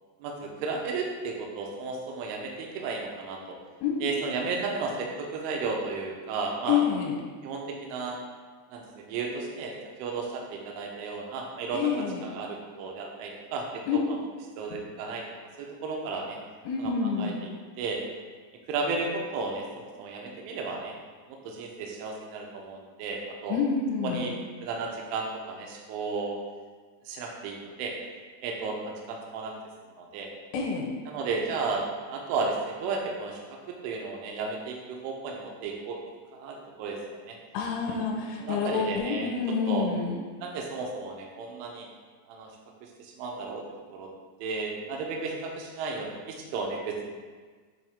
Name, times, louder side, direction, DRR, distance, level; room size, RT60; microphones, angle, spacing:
voice 1, 0.2-3.6 4.0-6.8 7.4-8.2 8.7-9.7 10.0-11.9 12.2-14.2 14.6-15.2 15.6-16.4 16.8-16.9 17.2-17.5 17.8-18.0 18.7-20.9 21.4-23.6 24.0-26.4 27.1-27.9 28.4-29.5 30.0-30.3 31.1-33.4 33.7-36.0 36.3-37.4 37.9-38.1 38.4-39.3 39.7-39.9 40.4-41.9 42.3-42.5 42.8-43.6 43.9-44.1 44.4-47.1, right 4 dB, 85° right, 0 dB, 3.1 m, -33 dB
voice 2, 6.7-7.1 11.7-12.2 13.9-14.0 14.7-14.8 16.6-17.4 23.5-24.3 30.5-30.9 37.5-40.2, left 6 dB, 85° left, 0 dB, 3.1 m, -28 dB
9.2 x 4.2 x 3.5 m, 1.5 s
omnidirectional pair, 5.7 m